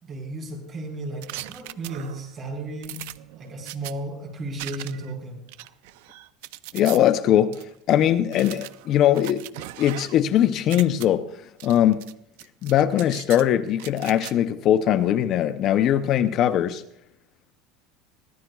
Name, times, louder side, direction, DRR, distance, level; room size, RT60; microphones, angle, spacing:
voice 1, 0.0-3.0 3.4-5.4, right 2 dB, 30° right, 4.6 m, -34 dB
sound 1, 1.2-2.3 2.8-3.9 4.6-5.1 5.5-7.0 7.5-7.6 8.3-10.3 10.6-11.1 11.6-12.1 12.4-13.4 13.8-14.3, right 16 dB, 80° right, 0.5 m, -39 dB
voice 2, 6.7-7.6 7.9-9.4 9.8-11.3 11.6-12.0 12.6-16.8, left 11 dB, 40° left, 0.6 m, -20 dB
23.0 x 16.0 x 2.3 m
cardioid pair, 150°, 0 cm